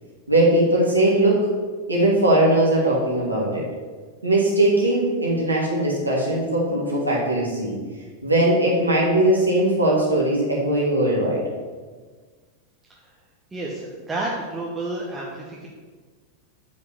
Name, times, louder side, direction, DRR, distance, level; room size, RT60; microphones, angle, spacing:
voice 1, 0.3-1.4 1.9-3.6 4.2-7.7 8.2-11.4, right 1 dB, 80° right, -4 dB, 2.8 m, -20 dB
voice 2, 13.5-15.7, right 2 dB, 15° right, -4 dB, 1.4 m, -30 dB
8.3 x 5.3 x 6.9 m, 1.4 s
figure-of-eight pair, 90°, 0 cm